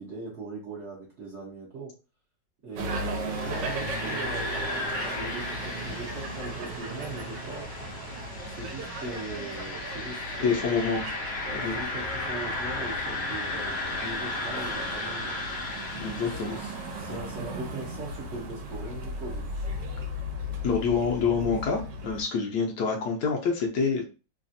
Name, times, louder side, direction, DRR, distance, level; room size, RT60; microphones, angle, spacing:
voice 1, 0.0-1.9 2.6-7.7 8.4-10.8 11.5-15.4 16.1-19.4, right 3 dB, 50° right, -5 dB, 0.8 m, -40 dB
sound 1, 2.8-22.2, equal, 75° right, 1.3 m, -37 dB
sound 2, 3.1-17.1, left 2 dB, 55° left, 0.7 m, -35 dB
voice 2, 10.4-11.0 11.6-11.8 16.0-16.6 17.1-17.2 20.6-24.0, left 5 dB, 70° left, 0 dB, 1.1 m, -27 dB
3.3 x 2.3 x 2.6 m, 0.33 s
omnidirectional pair, 2.0 m